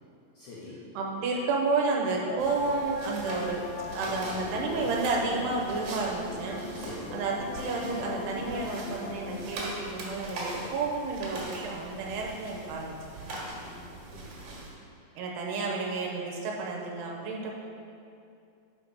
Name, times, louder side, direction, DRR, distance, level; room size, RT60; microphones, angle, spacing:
voice 1, 0.4-0.8 3.9-4.5 5.1-5.3 6.7-7.2 13.5-14.5 15.1-15.2, left 3 dB, 70° left, -7 dB, 1.9 m, -45 dB
voice 2, 0.9-3.6 3.9-6.6 7.1-12.9 15.2-17.6, right 3 dB, 80° right, -2 dB, 2.8 m, -31 dB
sound 1, 2.0-9.6, left 3 dB, 90° left, 2.8 m, -41 dB
sound 2, 2.4-14.7, right 2 dB, 60° right, 2.7 m, -41 dB
7.8 x 5.0 x 5.0 m, 2.5 s
omnidirectional pair, 4.8 m